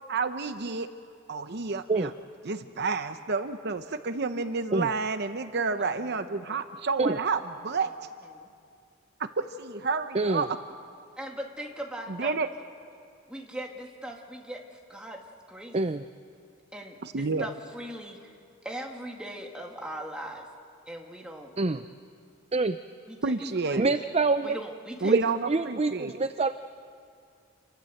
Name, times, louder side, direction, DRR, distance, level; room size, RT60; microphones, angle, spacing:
voice 1, 0.1-0.9 1.3-2.1 2.4-7.9 9.2-10.5 12.2-12.5 17.0-17.5 23.2-23.9 25.0-26.1, right 4 dB, 55° right, 9 dB, 0.8 m, -30 dB
voice 2, 5.8-6.6 7.8-7.9 8.3-8.5 11.2-12.4 13.3-15.2 15.5-15.8 16.7-18.4 18.6-20.5 20.9-21.5 23.1-23.3 23.6-23.9 24.4-25.4, right 1 dB, 5° right, 0 dB, 2.4 m, -40 dB
voice 3, 10.1-10.5 15.7-16.0 21.6-21.8 22.5-22.8 23.8-24.6 25.1-25.2 25.5-26.5, right 3 dB, 30° right, 10 dB, 0.5 m, -25 dB
28.0 x 22.0 x 7.9 m, 2.3 s
head